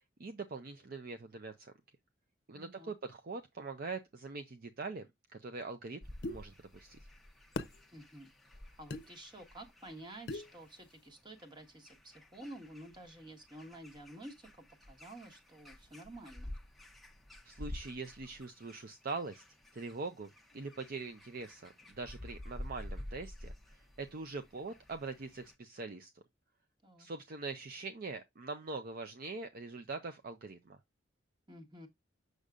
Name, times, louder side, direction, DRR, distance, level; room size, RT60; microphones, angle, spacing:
voice 1, 0.0-1.7 2.5-5.1 5.3-7.0 17.4-19.4 19.7-26.1 27.0-30.8, right 3 dB, 50° right, 0.5 m, -43 dB
voice 2, 2.5-3.0 7.9-8.3 8.8-14.5 14.8-16.5 26.8-27.1 31.5-31.9, right 1 dB, 25° right, 1.4 m, -51 dB
sound 1, 6.0-25.5, left 1 dB, ahead, 0.7 m, -51 dB
sound 2, 6.2-6.4 7.6-7.8 8.9-9.0 10.3-10.5, left 2 dB, 60° left, 0.6 m, -38 dB
6.5 x 6.4 x 2.4 m
head